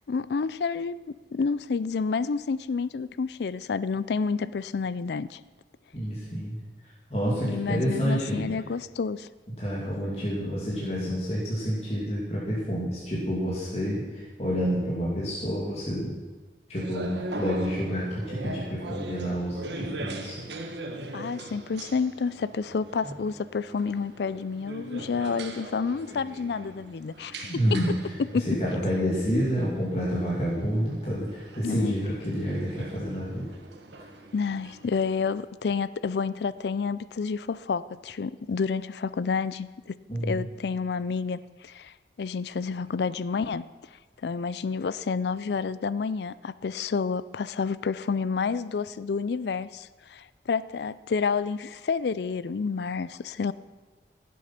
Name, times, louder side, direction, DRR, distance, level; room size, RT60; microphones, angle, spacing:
voice 1, 0.1-5.4 7.4-9.3 21.1-27.8 28.2-28.5 31.6-32.0 34.3-39.9 40.2-43.7 44.2-53.5, left 5 dB, 75° left, 17 dB, 0.4 m, -29 dB
voice 2, 5.9-6.6 7.1-8.5 9.6-16.2 16.7-20.4 27.4-27.9 28.3-33.5 40.1-40.4, equal, 35° left, -6 dB, 2.6 m, -29 dB
sound 1, 16.7-35.5, right 2 dB, 85° right, 1.4 m, -41 dB
16.0 x 8.4 x 5.8 m, 1.3 s
head